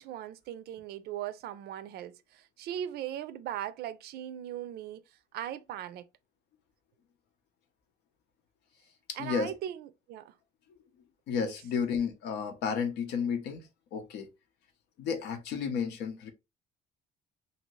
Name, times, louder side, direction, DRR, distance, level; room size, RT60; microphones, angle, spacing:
voice 1, 0.0-5.0 5.3-6.0 9.2-10.3 11.4-11.5, right 11 dB, 70° right, 0.4 m, -39 dB
voice 2, 9.1-9.5 11.3-14.3 15.0-16.3, left 6 dB, 80° left, 0.8 m, -32 dB
2.8 x 2.6 x 3.0 m
cardioid pair, 110°, 17 cm